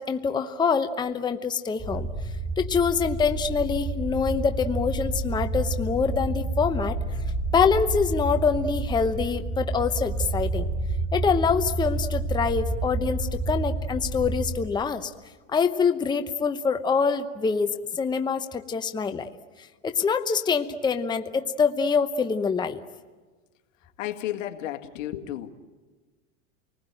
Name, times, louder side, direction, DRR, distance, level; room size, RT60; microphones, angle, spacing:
voice 1, 0.0-2.1 2.6-7.0 7.5-10.7 11.1-15.1 15.5-19.3 19.6-22.8, left 5 dB, 10° left, 8 dB, 0.9 m, -25 dB
sound 1, 1.8-14.5, right 2 dB, 15° right, 6.2 m, -29 dB
voice 2, 24.0-25.5, left 12 dB, 75° left, 7 dB, 2.0 m, -32 dB
29.0 x 20.0 x 9.1 m, 1.4 s
supercardioid pair, 125°, 39 cm